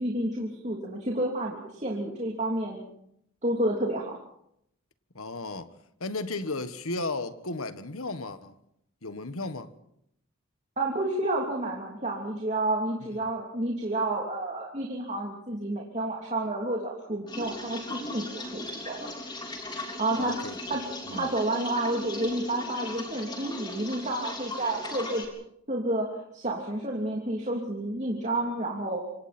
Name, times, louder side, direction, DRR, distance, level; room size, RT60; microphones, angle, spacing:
voice 1, 0.0-2.8 3.4-4.1 10.8-19.1 20.0-20.3 20.7-20.8 21.1-25.2 25.7-26.1 26.3-29.0, right 1 dB, 30° right, 3.1 m, -30 dB
voice 2, 5.1-5.7 6.0-8.5 9.0-9.7 13.1-13.2 20.2-20.6 21.0-21.3, left 2 dB, 75° left, 1.6 m, -34 dB
sound 1, 17.3-25.3, left 2 dB, 20° left, 3.7 m, -38 dB
27.0 x 25.5 x 4.4 m
head